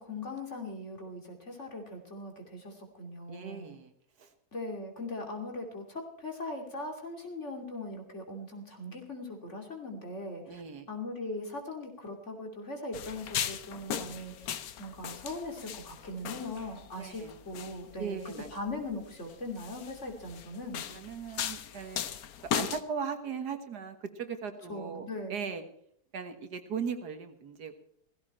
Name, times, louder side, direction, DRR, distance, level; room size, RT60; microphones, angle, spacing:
voice 1, 0.0-3.8 4.5-10.6 10.9-14.5 14.8-18.2 18.5-20.8 24.7-25.4, left 2 dB, 45° left, 3 dB, 3.2 m, -40 dB
voice 2, 3.3-3.9 4.2-4.3 10.5-10.9 17.0-17.4 18.0-18.5 20.9-22.0 22.5-25.6 26.1-27.8, right 6 dB, 70° right, 8 dB, 2.0 m, -38 dB
sound 1, 12.9-22.8, left 9 dB, 65° left, 1.2 m, -38 dB
17.5 x 15.5 x 4.4 m, 0.65 s
omnidirectional pair, 1.8 m